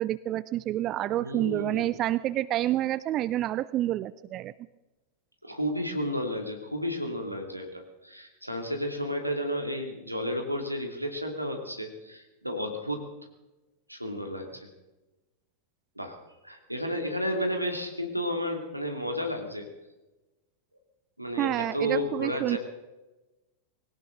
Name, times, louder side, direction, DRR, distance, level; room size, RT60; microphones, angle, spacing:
voice 1, 0.0-4.5 21.4-22.6, right 13 dB, 35° right, 17 dB, 0.4 m, -28 dB
voice 2, 1.2-1.9 5.4-13.0 13.9-14.7 16.0-16.2 16.4-19.7 21.2-22.6, equal, 90° right, 3 dB, 2.5 m, -32 dB
20.5 x 18.0 x 3.9 m, 1.1 s
figure-of-eight pair, 90°, 0 cm